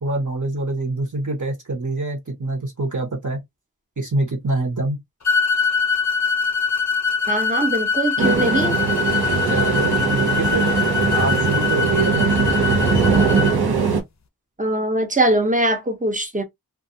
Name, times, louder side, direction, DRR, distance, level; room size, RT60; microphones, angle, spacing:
voice 1, 0.0-3.4 4.0-5.0 9.5-10.7 11.1-12.8, right 2 dB, 50° right, 1.0 m, -25 dB
sound 1, 5.2-13.6, left 5 dB, 45° left, 0.5 m, -23 dB
voice 2, 7.3-8.7 14.6-16.4, right 1 dB, 20° right, 0.7 m, -21 dB
sound 2, 8.2-14.0, right 5 dB, 85° right, 0.7 m, -20 dB
2.4 x 2.2 x 2.7 m
wide cardioid pair, 40°, 37 cm